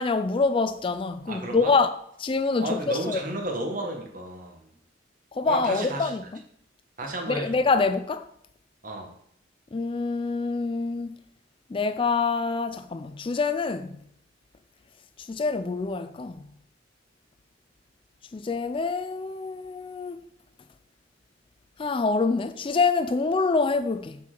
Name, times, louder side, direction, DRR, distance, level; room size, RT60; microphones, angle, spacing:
voice 1, 0.0-1.9 2.2-3.2 5.3-6.2 7.3-8.3 9.7-11.2 11.7-14.0 15.3-16.4 18.3-20.2 21.8-24.2, left 4 dB, 30° left, 0.3 m, -26 dB
voice 2, 1.3-1.7 2.6-4.7 5.4-6.1 7.0-7.6 8.8-9.1, right 1 dB, 45° right, 1.4 m, -32 dB
7.4 x 6.3 x 3.8 m
head